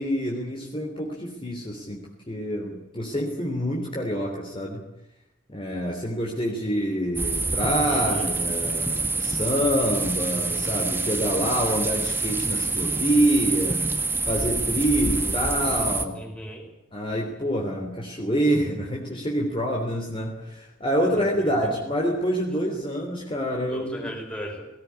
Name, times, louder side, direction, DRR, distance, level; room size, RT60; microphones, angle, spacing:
voice 1, 0.0-2.0 2.3-4.8 5.5-13.9 14.3-16.2 16.9-24.1, equal, 25° left, 0 dB, 3.3 m, -26 dB
sound 1, 7.2-16.0, right 3 dB, 10° right, 1.7 m, -26 dB
voice 2, 7.9-8.3 16.1-16.7 21.2-21.7 23.7-24.6, equal, 5° left, 2 dB, 5.4 m, -37 dB
18.5 x 18.5 x 9.7 m, 0.92 s
head